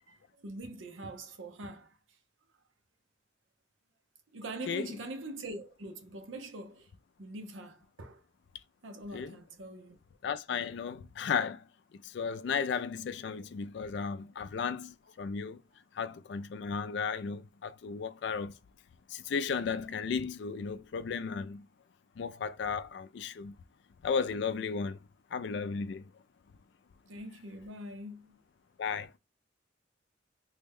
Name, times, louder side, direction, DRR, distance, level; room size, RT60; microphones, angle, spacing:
voice 1, 0.1-2.0 4.3-6.9 7.2-8.2 8.8-10.0 27.1-28.4, right 1 dB, 85° right, 0.7 m, -43 dB
voice 2, 10.2-15.6 15.9-18.6 19.1-21.7 22.2-23.6 24.0-25.0 25.3-26.1 28.8-29.1, left 6 dB, 65° left, 0.3 m, -34 dB
3.4 x 2.1 x 3.4 m
head